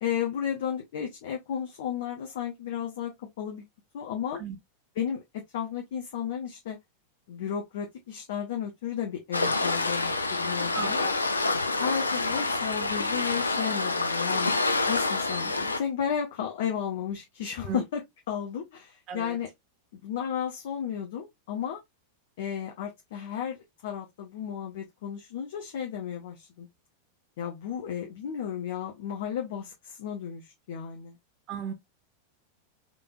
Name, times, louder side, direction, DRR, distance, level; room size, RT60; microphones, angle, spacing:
voice 1, 0.0-3.6 3.9-4.4 5.0-6.8 7.3-11.1 11.8-14.5 14.9-18.0 18.3-19.5 19.9-21.8 22.4-26.7 27.4-31.2, left 8 dB, 55° left, 0.8 m, -33 dB
Waves surf, 9.3-15.8, left 3 dB, 80° left, 0.4 m, -27 dB
voice 2, 10.7-11.1 17.6-17.8 19.1-19.4 31.5-31.7, right 7 dB, 35° right, 0.9 m, -36 dB
3.7 x 3.4 x 2.4 m
figure-of-eight pair, 90°, 0 cm